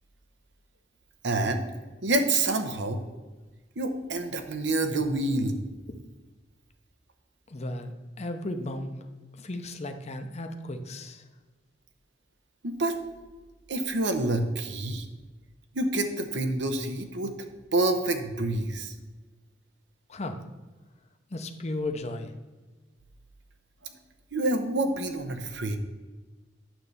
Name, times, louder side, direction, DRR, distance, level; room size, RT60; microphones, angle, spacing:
voice 1, 1.2-1.6 2.0-3.0 3.8-5.6 12.6-13.0 13.7-15.1 15.7-17.3 17.7-18.9 23.8-23.9 24.3-25.8, right 2 dB, 70° right, 6 dB, 0.9 m, -27 dB
voice 2, 7.5-8.9 9.3-11.2 20.1-20.4 21.3-22.3, left 1 dB, 35° left, 6 dB, 0.7 m, -35 dB
9.0 x 3.3 x 6.7 m, 1.3 s
head